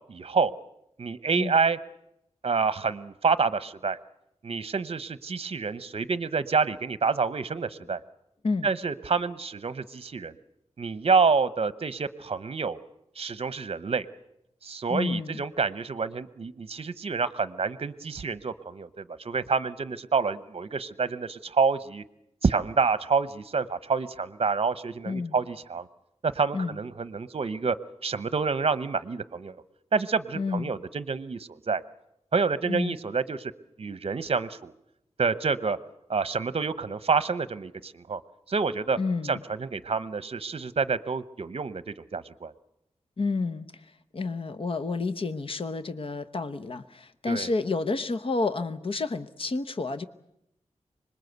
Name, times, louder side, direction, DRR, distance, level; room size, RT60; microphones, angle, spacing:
voice 1, 0.1-0.5 1.0-1.8 2.4-4.0 4.4-8.0 8.6-10.3 10.8-12.8 13.2-14.1 14.6-22.0 22.4-25.9 26.2-27.8 28.0-29.6 29.9-31.8 32.3-33.5 33.8-34.7 35.2-35.8 36.1-38.2 38.5-39.0 39.3-42.5 47.3-47.5, right 5 dB, 55° right, 15 dB, 0.9 m, -28 dB
voice 2, 14.9-15.4 25.1-25.4 26.5-26.8 30.3-30.7 32.7-33.0 39.0-39.4 43.2-50.1, left 3 dB, 50° left, 12 dB, 1.0 m, -30 dB
25.5 x 21.0 x 8.1 m, 0.80 s
wide cardioid pair, 120°, 12 cm